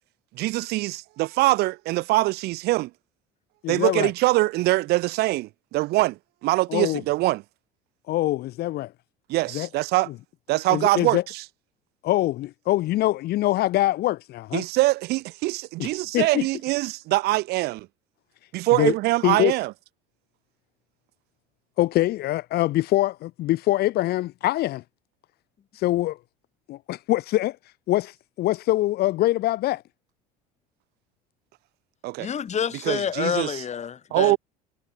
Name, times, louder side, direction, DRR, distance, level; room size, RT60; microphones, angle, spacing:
voice 1, 0.4-2.9 3.7-6.2 6.4-7.4 9.3-10.1 10.5-11.4 14.5-17.9 18.5-19.7 32.0-32.3 32.9-33.5 34.1-34.4, right 19 dB, 60° right, 0.5 m, -23 dB
voice 2, 3.6-4.1 6.7-7.0 8.1-8.9 9.5-9.7 10.7-11.2 12.0-14.6 15.8-16.5 18.8-18.9 19.2-19.5 21.8-24.8 25.8-26.2 26.7-27.6 27.9-28.1 28.4-29.8, left 16 dB, 60° left, 1.1 m, -23 dB
voice 3, 32.2-34.4, left 8 dB, 40° left, 2.2 m, -28 dB
hypercardioid pair, 75°, 19 cm